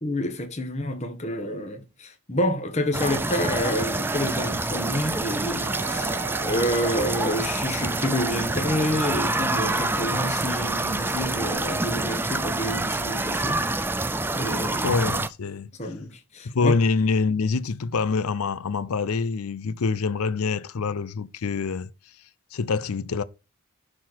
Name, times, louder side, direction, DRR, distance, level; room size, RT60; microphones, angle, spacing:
voice 1, 0.0-13.6 14.3-15.0 15.8-16.8, left 1 dB, 30° left, 1.2 m, -28 dB
sound 1, 2.9-15.3, right 2 dB, 10° right, 0.3 m, -27 dB
Wind instrument woodwind instrument, 5.6-9.5, right 6 dB, 60° right, 0.8 m, -39 dB
voice 2, 14.8-15.7 16.4-21.9 22.5-23.2, left 4 dB, 80° left, 0.6 m, -25 dB
11.5 x 4.2 x 4.6 m
head